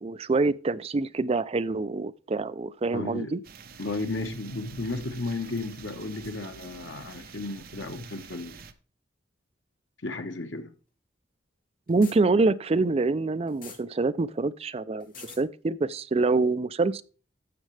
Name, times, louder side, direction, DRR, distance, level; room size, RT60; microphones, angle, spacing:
voice 1, 0.0-3.4 11.9-15.1 15.4-17.0, right 3 dB, 35° right, 0.4 m, -25 dB
voice 2, 2.9-3.4 3.8-8.6 10.0-10.7, left 2 dB, 85° left, 1.4 m, -34 dB
sound 1, 3.4-8.7, right 5 dB, 50° right, 0.9 m, -47 dB
sound 2, 11.9-12.2 13.5-13.8 15.0-15.4, left 5 dB, 50° left, 3.0 m, -43 dB
12.5 x 7.5 x 3.3 m
head